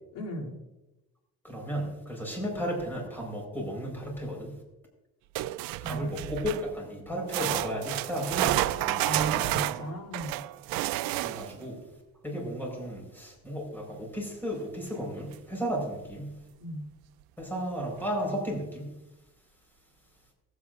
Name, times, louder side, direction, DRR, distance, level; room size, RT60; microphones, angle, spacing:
voice 1, 0.1-0.6 5.8-6.3 9.0-10.4 16.6-16.9, right 1 dB, 80° left, -3 dB, 2.8 m, -36 dB
voice 2, 1.4-4.6 5.8-9.6 11.2-11.8 12.2-16.4 17.4-18.9, equal, 5° left, -1 dB, 4.3 m, -34 dB
sound 1, 5.3-6.7 7.3-11.6 14.9-15.0 15.3-15.4 16.1-16.2, right 17 dB, 85° right, 0.5 m, -30 dB
19.0 x 8.2 x 2.5 m, 0.99 s
cardioid pair, 115°, 34 cm